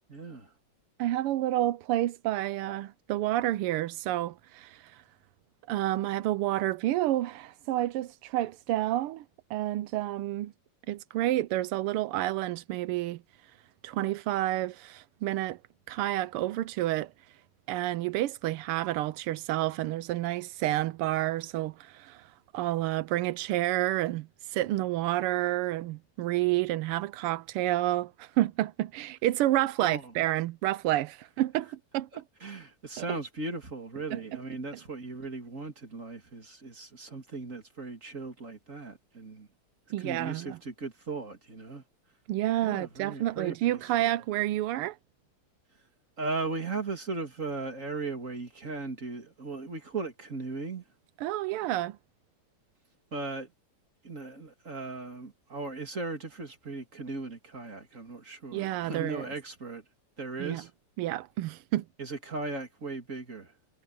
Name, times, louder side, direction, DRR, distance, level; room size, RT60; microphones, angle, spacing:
voice 1, 0.1-0.5 29.8-30.1 32.1-39.5 40.0-41.8 42.6-44.1 46.2-50.8 53.1-53.5 54.0-59.8 60.2-60.7 62.0-63.5, right 3 dB, 35° right, 3.1 m, -37 dB
voice 2, 1.0-4.8 5.7-9.2 9.5-10.5 10.9-13.2 13.8-15.6 15.9-17.1 17.7-22.2 22.5-32.2 33.0-33.1 34.1-34.4 39.9-40.6 42.3-45.0 51.2-52.0 58.5-59.3 60.4-60.6 61.0-61.8, right 15 dB, 85° right, 1.6 m, -29 dB
omnidirectional pair, 2.4 m